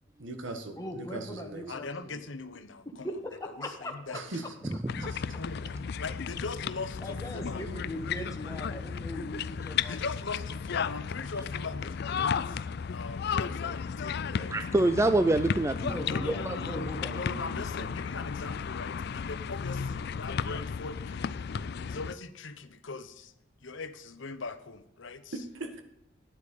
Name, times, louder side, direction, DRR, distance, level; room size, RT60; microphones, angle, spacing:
voice 1, 0.2-1.9 4.1-4.5 5.1-5.2 25.3-25.8, right 2 dB, 75° right, 7 dB, 1.6 m, -39 dB
voice 2, 0.7-2.1 3.0-4.2 5.0-5.1 7.0-10.0 15.5-17.9, left 1 dB, 15° left, 2 dB, 1.5 m, -40 dB
voice 3, 1.7-3.1 3.6-4.4 5.4-5.7 6.0-7.8 9.9-14.6 16.1-21.4 21.9-23.3 23.6-25.3, left 4 dB, 70° left, 12 dB, 0.9 m, -40 dB
voice 4, 4.7-5.1 14.5-16.6, right 2 dB, 15° right, 11 dB, 0.4 m, -27 dB
sound 1, 4.9-22.1, left 6 dB, 55° left, 0.4 m, -34 dB
10.5 x 8.3 x 5.3 m, 0.84 s
head